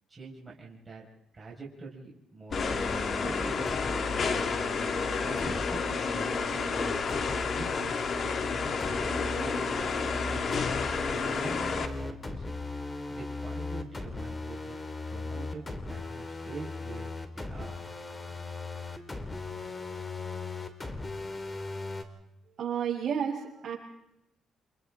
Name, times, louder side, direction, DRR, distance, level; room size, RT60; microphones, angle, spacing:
voice 1, 0.1-1.1 1.3-4.1 4.4-4.5 5.0-7.0 7.3-7.9 8.2-8.7 9.0-12.5 13.1-15.6 15.9-17.8, right 3 dB, 25° right, -4 dB, 5.7 m, -45 dB
sound 1, 2.5-11.9, left 5 dB, 50° left, 2.2 m, -30 dB
sound 2, 2.5-22.0, left 2 dB, 25° left, 2.8 m, -38 dB
voice 2, 22.6-23.7, right 8 dB, 55° right, -6 dB, 7.0 m, -31 dB
29.5 x 28.0 x 3.8 m, 0.85 s
cardioid pair, 90°, 0 cm